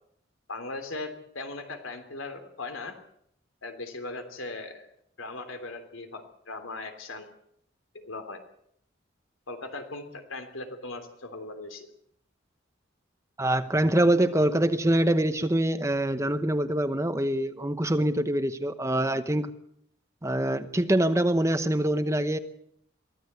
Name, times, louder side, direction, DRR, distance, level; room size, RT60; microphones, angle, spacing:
voice 1, 0.5-3.0 3.6-4.9 5.2-7.3 8.0-8.4 9.5-11.9, left 3 dB, 80° left, 7 dB, 3.2 m, -38 dB
voice 2, 13.4-19.5 20.2-22.4, right 1 dB, 15° right, 11 dB, 0.9 m, -24 dB
23.5 x 15.0 x 8.2 m, 0.72 s
head